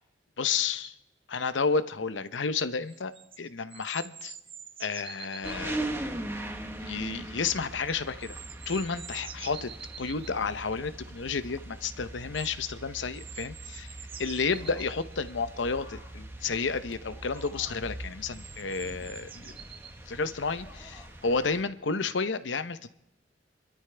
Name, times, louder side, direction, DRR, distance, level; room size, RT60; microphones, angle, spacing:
voice 1, 0.4-0.9 1.3-4.4 4.8-5.8 6.8-8.4 8.7-9.7 10.0-13.9 14.2-19.5 20.1-22.9, left 5 dB, 85° left, 13 dB, 0.8 m, -31 dB
sound 1, 0.8-1.0 2.9-5.6 7.9-10.3 12.3-12.8 13.1-15.3 16.9-17.0 17.3-17.5 18.3-20.0 20.5-20.6, right 8 dB, 30° right, 0.6 m, -46 dB
sound 2, 5.4-21.6, right 1 dB, 15° right, 1.3 m, -41 dB
sound 3, 14.5-15.0 15.7-18.0 18.6-19.7 20.3-21.2 21.5-21.6, left 1 dB, 20° left, 2.8 m, -54 dB
27.5 x 13.0 x 3.4 m, 0.83 s
head